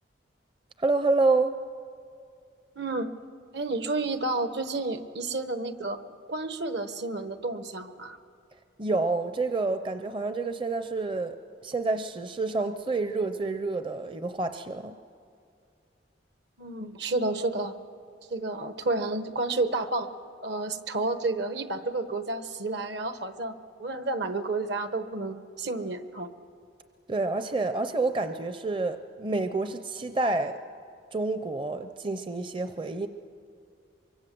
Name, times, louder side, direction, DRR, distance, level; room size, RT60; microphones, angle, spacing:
voice 1, 0.8-1.6 8.8-11.4 11.6-15.0 27.1-30.6 31.1-33.1, right 3 dB, 25° right, 9 dB, 0.6 m, -28 dB
voice 2, 2.7-3.1 3.5-6.0 6.3-8.2 16.6-17.7 18.3-20.1 20.4-23.5 23.8-26.3, right 2 dB, 65° right, 10 dB, 1.2 m, -30 dB
24.0 x 24.0 x 7.7 m, 2.3 s
head